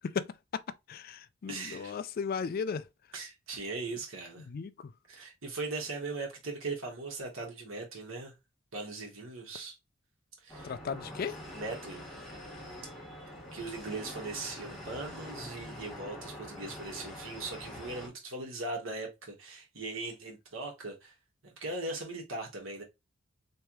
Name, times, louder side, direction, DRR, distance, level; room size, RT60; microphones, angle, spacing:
voice 1, 0.9-2.8 4.5-4.7 10.6-11.3, left 6 dB, 45° left, 0.3 m, -35 dB
voice 2, 1.5-2.0 3.1-4.5 5.1-8.3 8.7-9.7 10.4-10.7 11.5-12.0 13.5-21.1 21.4-22.8, right 3 dB, 75° right, 1.5 m, -39 dB
sound 1, 10.5-18.1, left 1 dB, 5° left, 1.8 m, -45 dB
3.4 x 3.2 x 3.0 m
head